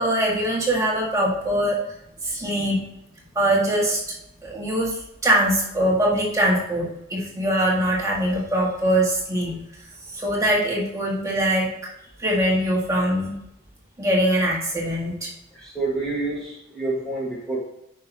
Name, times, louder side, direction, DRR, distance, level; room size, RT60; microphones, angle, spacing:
voice 1, 0.0-1.8 2.2-2.8 3.4-4.2 4.4-5.0 5.2-9.5 10.1-11.7 12.2-13.3 14.0-15.3, right 1 dB, 15° right, -4 dB, 1.9 m, -22 dB
voice 2, 15.5-17.6, right 3 dB, 5° left, -6 dB, 1.7 m, -28 dB
9.2 x 5.8 x 2.9 m, 0.82 s
head